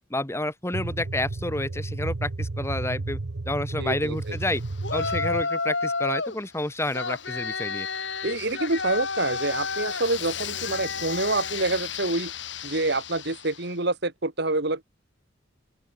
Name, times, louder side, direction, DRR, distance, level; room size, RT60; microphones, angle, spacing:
voice 1, 0.1-3.2 3.5-4.6 4.9-7.9, left 1 dB, 15° left, 2.1 m, -29 dB
sound 1, 0.7-5.4, right 2 dB, 80° right, 0.9 m, -32 dB
voice 2, 3.8-4.6 8.2-12.3 12.6-14.8, right 2 dB, 60° right, 2.8 m, -27 dB
Yell, 4.8-6.4 6.9-13.6, left 5 dB, 70° left, 6.0 m, -31 dB
open air
head